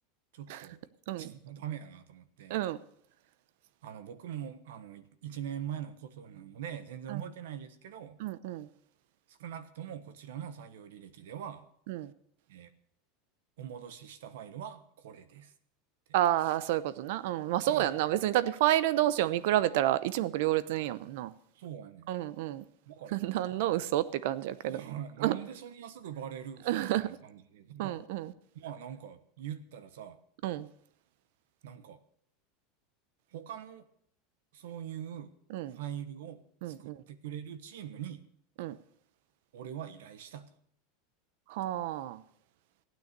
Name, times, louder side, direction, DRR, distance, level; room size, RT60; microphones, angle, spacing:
voice 1, 0.3-2.6 3.8-8.2 9.3-11.7 12.5-12.7 13.6-15.5 17.7-17.9 21.5-22.1 22.9-23.5 24.7-28.0 28.5-30.2 31.6-32.0 33.3-33.9 34.5-35.3 35.7-38.3 39.5-40.5, right 9 dB, 85° right, 1.2 m, -43 dB
voice 2, 8.2-8.7 11.9-12.1 16.1-21.3 22.1-22.6 23.1-24.8 25.2-25.3 26.7-27.2 27.8-28.3 30.4-30.7 35.5-35.8 36.6-37.0 38.6-38.8 41.5-42.2, right 14 dB, 65° right, 0.8 m, -30 dB
15.5 x 9.4 x 6.7 m
supercardioid pair, 160°, 0 cm